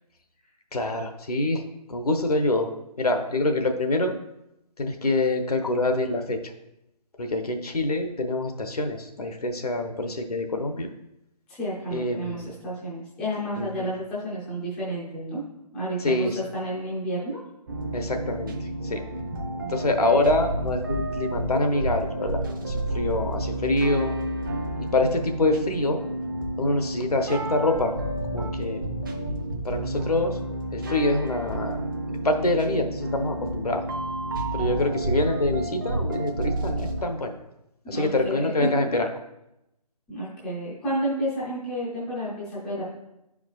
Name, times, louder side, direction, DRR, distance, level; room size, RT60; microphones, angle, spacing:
voice 1, 0.7-1.6 1.9-2.7 3.0-4.2 4.8-6.4 7.2-10.9 11.9-12.5 13.6-13.9 16.0-16.4 17.9-18.5 18.9-19.0 19.7-22.4 22.7-24.2 24.9-26.0 26.6-27.9 28.3-28.8 29.6-30.4 30.7-31.8 32.2-33.8 34.5-37.3 37.9-39.1, left 2 dB, 65° left, 5 dB, 0.9 m, -25 dB
voice 2, 11.5-15.4 15.7-17.4 19.6-19.9 37.9-38.7 40.1-42.8, right 1 dB, 5° left, -8 dB, 0.5 m, -31 dB
sound 1, 17.7-37.0, right 1 dB, 30° right, 0.7 m, -30 dB
10.0 x 4.8 x 2.4 m, 0.88 s
figure-of-eight pair, 150°, 20 cm